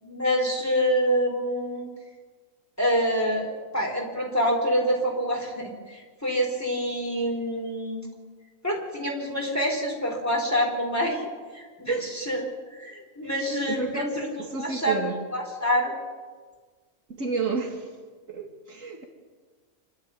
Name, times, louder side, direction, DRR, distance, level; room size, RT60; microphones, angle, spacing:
voice 1, 0.0-1.9 2.8-3.5 3.7-8.1 8.6-11.2 11.5-12.4 12.8-14.3 14.5-15.0 15.3-16.0, equal, 10° left, 0 dB, 4.3 m, -26 dB
voice 2, 13.7-15.2 17.1-17.9 18.3-19.0, right 4 dB, 65° right, 2 dB, 2.5 m, -30 dB
26.5 x 12.0 x 9.3 m, 1.5 s
omnidirectional pair, 1.5 m